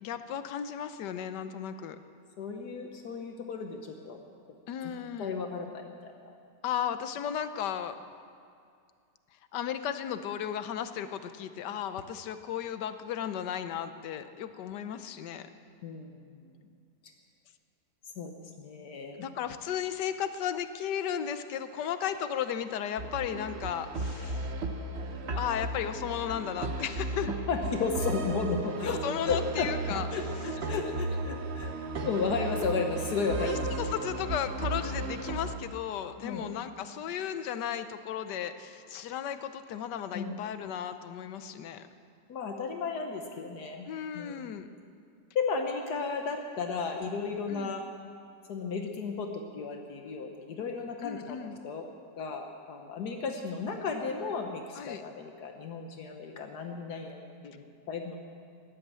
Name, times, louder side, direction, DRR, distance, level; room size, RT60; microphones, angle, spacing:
voice 1, 0.0-2.0 4.7-5.3 6.6-8.0 9.5-15.5 19.1-24.5 25.4-27.3 28.8-30.1 33.4-41.9 43.9-44.7 47.5-47.7 51.0-51.6 54.8-55.0, left 9 dB, 90° left, 10 dB, 1.4 m, -35 dB
voice 2, 2.4-4.2 4.5-4.9 5.2-6.3 15.8-16.5 18.2-19.3 27.5-29.0 29.3-31.7 32.0-33.7 36.2-36.5 40.1-40.4 42.3-43.9 44.1-44.4 45.3-47.8 48.5-51.8 52.1-58.2, left 5 dB, 75° left, 3 dB, 1.5 m, -34 dB
sound 1, 23.0-35.6, right 2 dB, 45° right, 1.0 m, -35 dB
16.0 x 11.5 x 7.6 m, 2.3 s
omnidirectional pair, 1.8 m